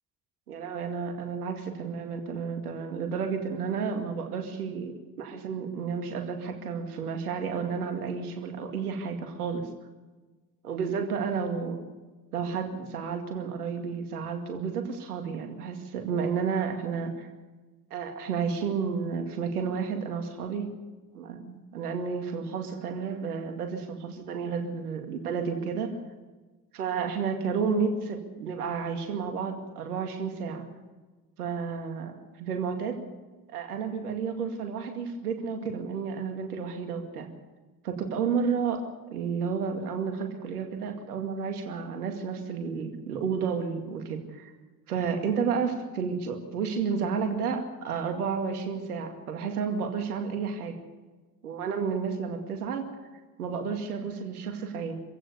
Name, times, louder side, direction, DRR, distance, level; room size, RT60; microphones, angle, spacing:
voice 1, 0.5-4.9 5.2-9.7 10.6-11.8 12.3-17.3 17.9-20.7 21.1-26.0 26.7-30.7 31.4-33.0 33.5-37.3 37.8-38.8 39.1-44.5 44.9-50.8 51.4-52.9 53.4-54.9, right 6 dB, 80° right, 5 dB, 2.3 m, -31 dB
25.0 x 16.0 x 6.8 m, 1.3 s
figure-of-eight pair, 45°, 45 cm